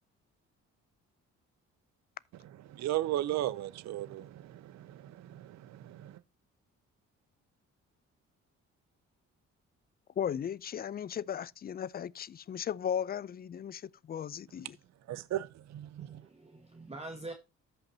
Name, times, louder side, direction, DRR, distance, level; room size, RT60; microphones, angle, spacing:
voice 1, 2.7-6.2 15.1-16.2, right 14 dB, 65° right, 0.5 m, -36 dB
voice 2, 10.2-14.8, left 8 dB, 30° left, 0.4 m, -36 dB
voice 3, 16.0-17.3, right 2 dB, 20° right, 1.4 m, -45 dB
13.5 x 5.6 x 2.7 m
cardioid pair, 90°, 30 cm